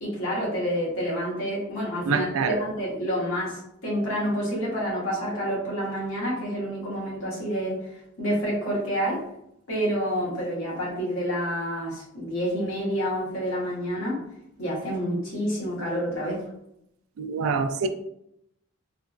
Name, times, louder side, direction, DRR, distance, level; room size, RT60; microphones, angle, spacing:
voice 1, 0.0-9.2 9.7-14.2 14.6-16.5, equal, 85° left, -5 dB, 1.2 m, -28 dB
voice 2, 2.1-2.6 17.2-17.9, right 5 dB, 85° right, 9 dB, 0.3 m, -25 dB
3.2 x 2.0 x 2.4 m, 0.78 s
head